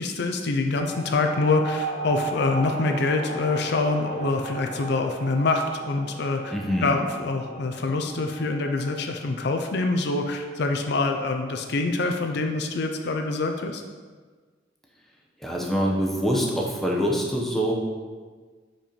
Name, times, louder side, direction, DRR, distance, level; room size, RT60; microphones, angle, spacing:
voice 1, 0.0-6.5 6.8-13.8, left 3 dB, 65° left, 4 dB, 0.5 m, -25 dB
sound 1, 0.8-11.7, right 2 dB, 35° left, 0.9 m, -36 dB
voice 2, 6.5-6.9 15.4-17.7, equal, ahead, -2 dB, 0.8 m, -25 dB
5.2 x 4.4 x 5.1 m, 1.5 s
head